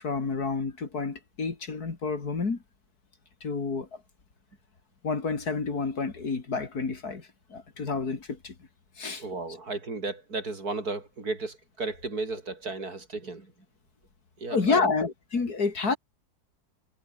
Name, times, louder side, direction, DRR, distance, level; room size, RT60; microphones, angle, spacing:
voice 1, 0.0-2.6 3.4-3.9 5.0-8.5 9.0-9.2 14.5-16.0, left 4 dB, 65° left, 3.3 m, -29 dB
voice 2, 9.2-13.5 14.4-14.9, right 3 dB, 65° right, 4.5 m, -34 dB
omnidirectional pair, 1.8 m